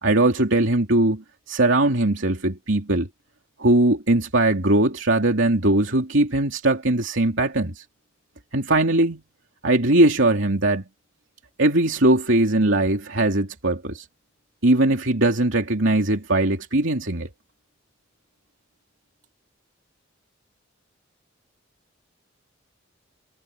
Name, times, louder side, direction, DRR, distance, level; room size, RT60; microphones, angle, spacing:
voice 1, 0.0-3.1 3.6-7.8 8.5-9.2 9.6-10.8 11.6-14.0 14.6-17.3, right 2 dB, 65° right, 3.2 m, -20 dB
head